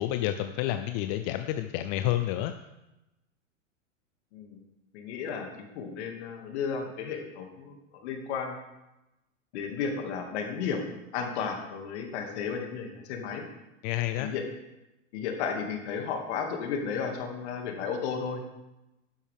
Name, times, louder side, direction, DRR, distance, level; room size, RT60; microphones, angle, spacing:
voice 1, 0.0-2.6 13.8-14.3, left 13 dB, 35° left, 8 dB, 0.5 m, -29 dB
voice 2, 4.9-8.5 9.5-10.8 11.1-13.4 14.2-14.4 15.1-18.4, left 6 dB, 55° left, 2 dB, 2.4 m, -33 dB
11.5 x 10.0 x 3.6 m, 0.96 s
hypercardioid pair, 125°, 39 cm